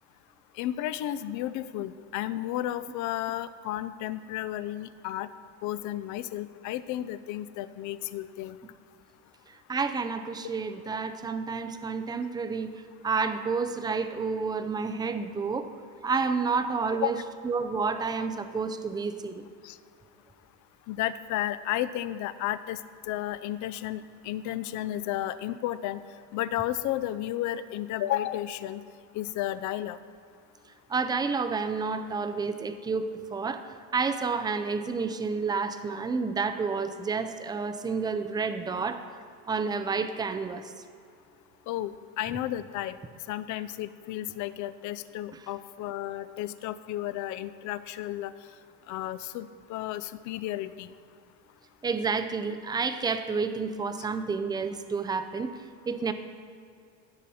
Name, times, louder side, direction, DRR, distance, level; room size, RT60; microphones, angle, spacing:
voice 1, 0.6-5.3 5.6-8.6 17.0-17.1 19.6-19.8 20.9-22.8 23.1-26.0 26.3-28.8 29.1-30.0 41.7-43.0 43.3-48.3 48.9-50.9 54.0-54.1, left 13 dB, 50° left, 15 dB, 0.5 m, -33 dB
voice 2, 9.7-15.7 16.0-17.2 17.4-19.4 30.9-39.0 39.5-40.7 51.8-55.5 55.9-56.1, right 4 dB, 10° right, 9 dB, 0.4 m, -30 dB
15.5 x 6.3 x 4.2 m, 2.4 s
cardioid pair, 130°, 39 cm